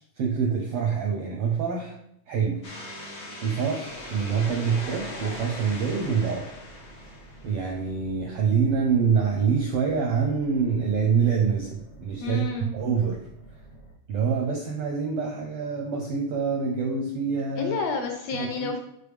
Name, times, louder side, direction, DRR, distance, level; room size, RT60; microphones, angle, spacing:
voice 1, 0.0-2.0 2.3-2.6 3.4-6.5 7.4-12.4 12.7-13.2 14.1-17.7 18.4-18.7, right 6 dB, 80° right, 0 dB, 1.3 m, -26 dB
sound 1, 2.6-7.8, left 2 dB, 90° left, 0.6 m, -40 dB
sound 2, 3.9-13.9, right 2 dB, 35° left, 0.9 m, -50 dB
voice 2, 12.2-12.8 17.6-18.8, left 4 dB, 75° left, 3 dB, 1.6 m, -30 dB
6.7 x 4.4 x 3.4 m, 0.77 s
omnidirectional pair, 3.4 m